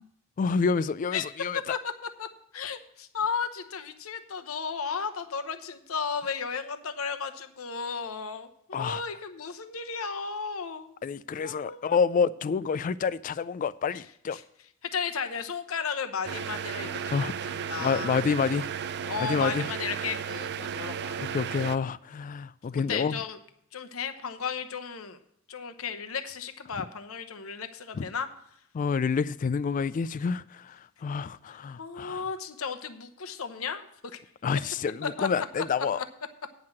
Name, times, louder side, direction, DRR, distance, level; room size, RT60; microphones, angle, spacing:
voice 1, 0.4-1.8 8.7-9.0 11.0-14.4 17.1-17.5 17.8-19.7 21.2-23.2 26.8-26.9 27.9-28.0 28.7-32.2 34.4-36.0, left 5 dB, 40° left, 0.3 m, -28 dB
voice 2, 2.5-10.9 11.3-12.0 14.3-14.4 14.9-18.2 19.1-21.2 22.9-23.4 23.7-25.2 25.5-28.3 31.8-33.9 34.1-34.2 35.2-35.6 35.9-36.0, left 6 dB, 75° left, 0.9 m, -34 dB
sound 1, 16.2-21.8, right 8 dB, 55° right, 0.4 m, -34 dB
9.4 x 5.8 x 7.4 m
head